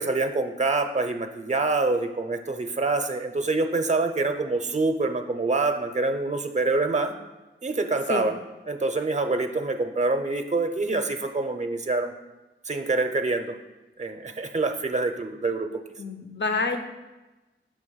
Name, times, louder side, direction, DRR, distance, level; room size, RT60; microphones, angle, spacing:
voice 1, 0.0-7.1 7.6-8.4 8.7-12.1 12.7-13.5 14.0-15.8, right 3 dB, 35° right, 6 dB, 0.5 m, -26 dB
voice 2, 16.0-16.8, left 4 dB, 60° left, 6 dB, 0.6 m, -27 dB
6.3 x 2.9 x 5.6 m, 1.1 s
wide cardioid pair, 45°, 21 cm